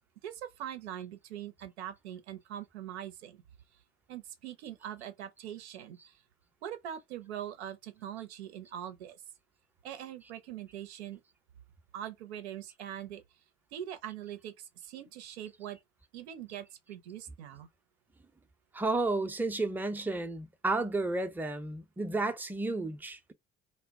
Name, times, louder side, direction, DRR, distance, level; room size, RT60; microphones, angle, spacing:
voice 1, 0.2-3.4 4.1-6.2 6.6-9.2 9.8-11.2 11.9-13.2 13.7-15.8 16.1-17.7, right 10 dB, 85° right, 0.6 m, -42 dB
voice 2, 18.7-23.3, right 2 dB, 5° right, 0.5 m, -32 dB
2.1 x 2.0 x 3.5 m
hypercardioid pair, 65°, 32 cm